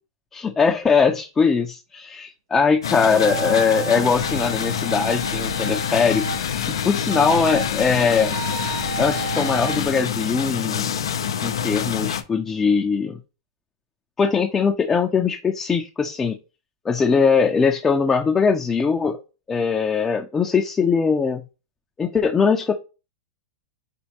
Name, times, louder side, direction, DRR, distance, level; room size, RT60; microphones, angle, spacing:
voice 1, 0.3-6.3 6.7-8.4 9.0-11.0 11.4-13.2 14.2-16.4 16.8-19.2 19.5-21.4 22.0-22.7, left 5 dB, 15° left, 2 dB, 0.5 m, -21 dB
sound 1, 2.8-12.2, left 8 dB, 90° left, 0.5 m, -27 dB
sound 2, 3.0-6.4 7.1-7.7 8.2-9.8, right 7 dB, 85° right, 0.8 m, -32 dB
sound 3, 4.1-9.9, left 9 dB, 75° left, 0.8 m, -33 dB
4.3 x 2.2 x 2.8 m, 0.30 s
hypercardioid pair, 125°, 2 cm